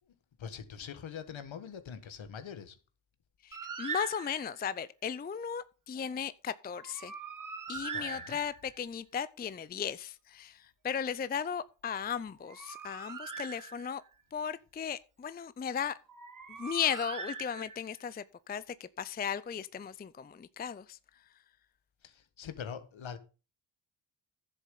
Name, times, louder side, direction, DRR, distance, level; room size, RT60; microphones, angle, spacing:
voice 1, 0.4-2.8 6.1-6.2 7.7-8.4 22.0-23.2, left 7 dB, 65° left, 1.7 m, -43 dB
voice 2, 3.4-7.1 7.7-14.0 14.3-16.0 16.6-21.0, left 7 dB, 20° left, 0.4 m, -36 dB
Bird, 3.5-4.7 6.7-8.8 12.2-14.1 16.1-18.0, right 5 dB, 40° right, 1.6 m, -42 dB
11.0 x 7.5 x 5.4 m
cardioid pair, 95°, 50 cm